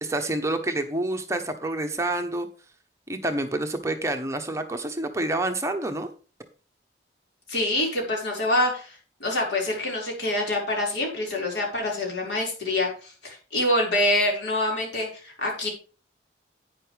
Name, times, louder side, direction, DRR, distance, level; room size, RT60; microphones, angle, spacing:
voice 1, 0.0-2.5 3.1-6.1, right 2 dB, 15° right, 5 dB, 1.0 m, -28 dB
voice 2, 7.5-15.7, left 1 dB, 80° left, -1 dB, 5.2 m, -26 dB
11.0 x 9.6 x 3.4 m, 0.37 s
head